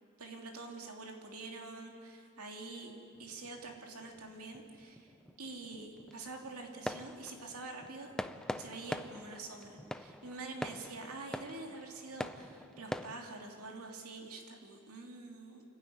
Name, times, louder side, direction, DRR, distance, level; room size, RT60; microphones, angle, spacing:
voice 1, 0.2-2.9 3.2-5.1 5.4-8.1 8.6-15.6, right 3 dB, 80° right, 2 dB, 2.8 m, -46 dB
sound 1, 3.1-13.2, left 1 dB, 5° left, 0.5 m, -44 dB
27.5 x 12.5 x 9.6 m, 2.4 s
head